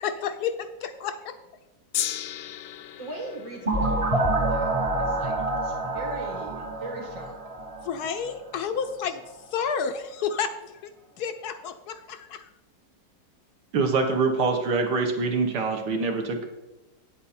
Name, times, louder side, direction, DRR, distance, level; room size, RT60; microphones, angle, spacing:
voice 1, 0.0-1.4 7.8-9.2 9.5-10.9 11.2-12.5, left 6 dB, 70° left, 9 dB, 1.0 m, -31 dB
Gong, 1.9-8.3 9.1-9.2, left 12 dB, 90° left, 1.3 m, -38 dB
voice 2, 3.0-7.4, right 1 dB, 90° right, -1 dB, 2.9 m, -39 dB
sound 1, 3.6-8.3, right 2 dB, 25° right, 0.8 m, -27 dB
voice 3, 13.7-16.4, right 4 dB, 70° right, 3 dB, 1.9 m, -24 dB
9.5 x 8.2 x 4.3 m, 1.0 s
omnidirectional pair, 2.0 m